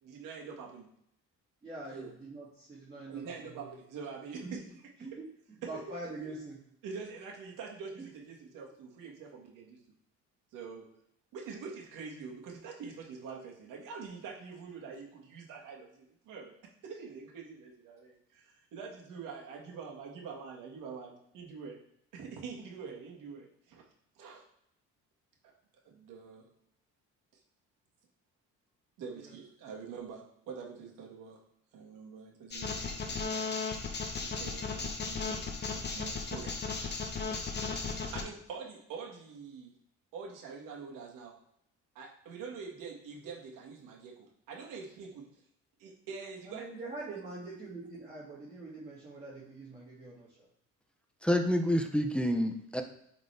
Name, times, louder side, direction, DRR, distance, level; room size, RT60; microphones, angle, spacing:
voice 1, 0.0-0.9 1.9-2.1 3.1-4.8 5.1-5.2 5.6-5.7 6.8-9.8 10.5-10.9 11.3-16.5 16.8-21.8 22.1-23.8 24.1-24.4 25.8-26.4 27.3-27.4 29.0-31.4 31.7-33.5 34.2-35.4 35.7-36.6 37.9-39.7 40.1-41.3 41.9-45.3 45.8-46.7, right 5 dB, 85° right, -1 dB, 1.8 m, -45 dB
voice 2, 1.6-3.7 4.4-4.6 5.0-5.2 5.7-6.6 29.1-29.3 46.5-50.5, right 2 dB, 20° right, -9 dB, 2.4 m, -44 dB
sound 1, 32.5-38.2, left 4 dB, 35° left, 1.0 m, -36 dB
voice 3, 51.2-52.8, equal, 5° left, 5 dB, 0.6 m, -28 dB
8.8 x 4.3 x 3.4 m, 0.74 s
cardioid pair, 130°, 31 cm